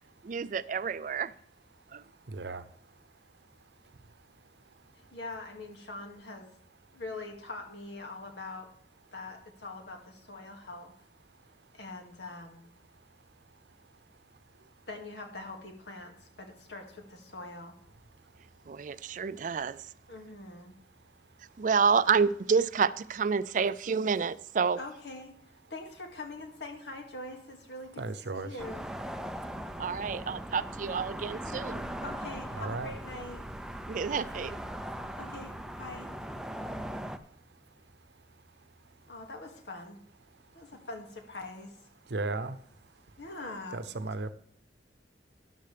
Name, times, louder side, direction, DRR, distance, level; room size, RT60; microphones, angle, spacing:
voice 1, 0.2-1.3 1.9-2.0 18.7-19.9 21.6-24.8 29.8-31.9 33.9-34.6, right 5 dB, 45° right, 0.4 m, -29 dB
voice 2, 2.3-2.6 28.0-28.5 32.5-33.0 42.1-42.6 43.7-44.3, right 3 dB, 75° right, 0.8 m, -35 dB
voice 3, 4.9-6.5 6.9-8.7 9.1-10.9 11.7-12.7 14.9-17.7 20.1-20.7 24.8-25.3 25.7-28.0 28.3-28.9 32.0-33.4 35.2-36.1 39.1-40.0 40.5-41.8 43.2-43.8, left 2 dB, 80° left, 2.3 m, -43 dB
sound 1, 28.6-37.2, right 1 dB, 5° right, 0.6 m, -39 dB
13.0 x 11.0 x 3.4 m
head